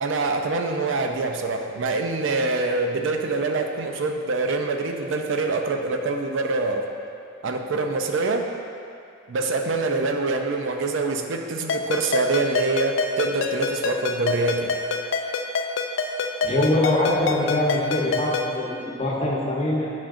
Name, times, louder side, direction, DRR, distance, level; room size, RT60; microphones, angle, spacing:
voice 1, 0.0-6.9 7.4-8.5 9.3-14.8, right 3 dB, 70° right, 4 dB, 0.5 m, -25 dB
Ringtone, 11.7-18.6, left 4 dB, 65° left, 0.4 m, -27 dB
voice 2, 16.4-19.9, left 1 dB, 30° left, -4 dB, 0.9 m, -23 dB
7.6 x 5.6 x 2.5 m, 2.5 s
head